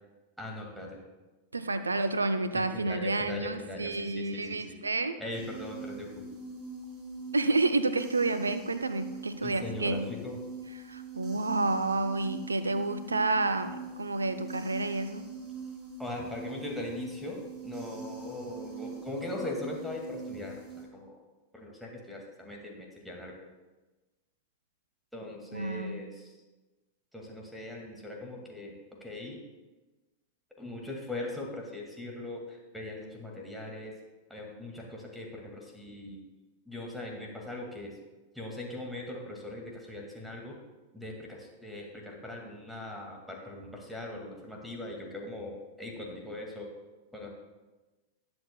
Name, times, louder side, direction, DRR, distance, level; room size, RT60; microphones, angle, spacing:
voice 1, 0.4-1.0 2.5-4.8 5.2-6.3 9.4-10.4 16.0-21.2 21.5-23.4 25.1-26.4 27.1-28.7 29.0-29.4 30.6-33.9 34.3-36.2 36.7-37.9 38.3-40.6 40.9-46.7 47.1-47.3, left 1 dB, ahead, 0 dB, 2.1 m, -40 dB
voice 2, 1.5-5.2 7.3-10.1 10.8-15.2 25.5-26.0, right 2 dB, 75° right, 10 dB, 0.5 m, -29 dB
sound 1, 5.3-20.9, right 3 dB, 25° right, 2.9 m, -43 dB
19.5 x 7.8 x 2.3 m, 1.2 s
figure-of-eight pair, 90°, 0 cm